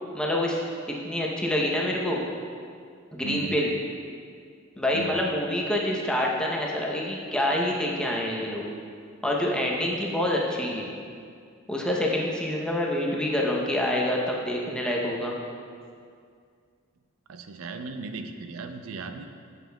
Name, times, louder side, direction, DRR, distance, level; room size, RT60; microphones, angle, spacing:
voice 1, 0.1-0.6 0.9-2.2 3.1-3.7 4.8-8.6 9.2-10.9 11.7-15.3, left 1 dB, 5° left, -2 dB, 0.7 m, -26 dB
voice 2, 3.2-3.6 4.9-5.2 17.3-19.3, right 3 dB, 85° right, 7 dB, 0.4 m, -37 dB
8.9 x 6.6 x 2.2 m, 2.2 s
head